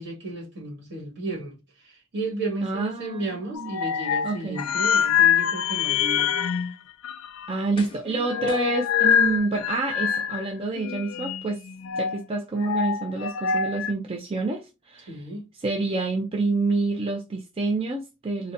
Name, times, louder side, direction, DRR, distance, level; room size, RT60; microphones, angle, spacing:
voice 1, 0.0-6.6 15.1-15.5, right 2 dB, 55° right, 1.7 m, -33 dB
voice 2, 2.6-3.7 4.2-4.6 7.5-11.6 12.0-15.1 15.6-18.5, right 3 dB, 25° right, 0.4 m, -28 dB
sound 1, 3.5-6.7 7.0-7.5 7.9-10.5 10.7-12.2 12.6-13.9, left 8 dB, 70° left, 0.4 m, -25 dB
sound 2, 6.8-7.0 7.7-8.2 8.5-9.7 10.2-10.3, left 2 dB, 25° left, 0.6 m, -44 dB
3.9 x 2.1 x 2.5 m
head